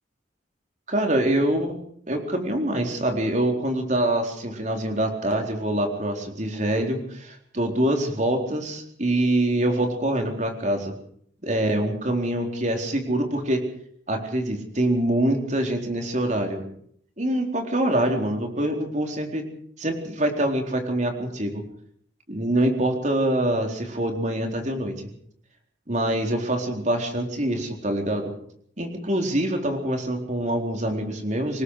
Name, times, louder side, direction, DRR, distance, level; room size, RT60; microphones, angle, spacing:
voice 1, 0.9-1.8 2.1-10.9 11.4-13.7 14.1-16.6 17.2-19.5 19.8-21.6 22.3-24.9 25.9-28.3 28.8-31.6, right 1 dB, 40° right, 3 dB, 4.2 m, -25 dB
26.5 x 20.0 x 5.0 m, 0.62 s
head